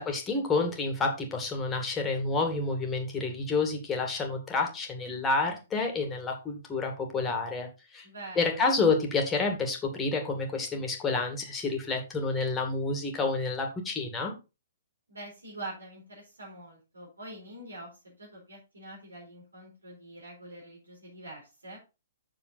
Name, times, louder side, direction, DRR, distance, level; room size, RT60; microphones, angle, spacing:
voice 1, 0.0-7.7 7.9-8.1 8.4-14.3, left 3 dB, 15° left, 2 dB, 2.3 m, -29 dB
voice 2, 8.0-8.6 15.1-21.8, right 2 dB, 75° right, -3 dB, 4.3 m, -45 dB
7.7 x 6.7 x 4.1 m, 0.28 s
figure-of-eight pair, 120°, 0 cm